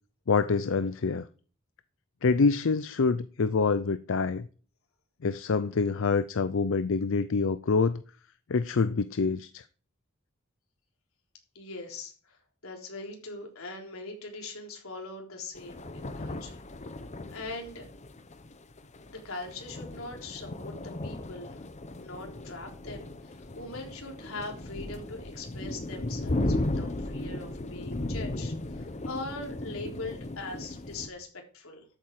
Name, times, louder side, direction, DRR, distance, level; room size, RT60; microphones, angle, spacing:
voice 1, 0.3-1.3 2.2-4.5 5.2-8.0 8.5-9.6, left 4 dB, 65° left, 0.5 m, -26 dB
voice 2, 11.5-16.6 17.3-17.8 19.1-21.6 22.0-31.9, left 2 dB, 85° left, 3.8 m, -41 dB
sound 1, 15.6-31.1, left 1 dB, 35° left, 0.9 m, -36 dB
13.5 x 8.5 x 4.8 m
head